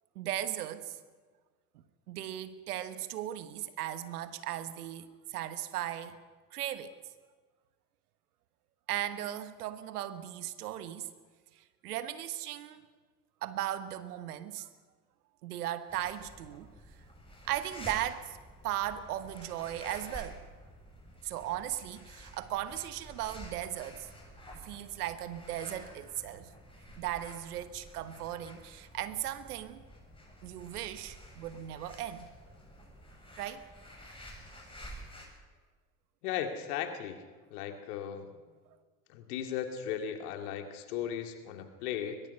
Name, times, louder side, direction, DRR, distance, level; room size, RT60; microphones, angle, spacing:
voice 1, 0.1-1.0 2.1-6.2 6.5-6.9 8.9-11.1 11.8-12.9 13.4-14.7 15.4-16.7 17.4-18.4 18.6-20.4 21.2-24.1 24.6-26.5 27.0-29.8 30.4-32.3 33.4-33.6, right 12 dB, 85° right, 12 dB, 1.3 m, -37 dB
sound 1, 15.9-35.3, equal, 10° left, 7.4 m, -50 dB
voice 2, 36.2-37.2 37.5-38.3 39.1-42.2, left 9 dB, 80° left, 6 dB, 2.3 m, -36 dB
22.0 x 21.0 x 5.6 m, 1.5 s
hypercardioid pair, 65°, 44 cm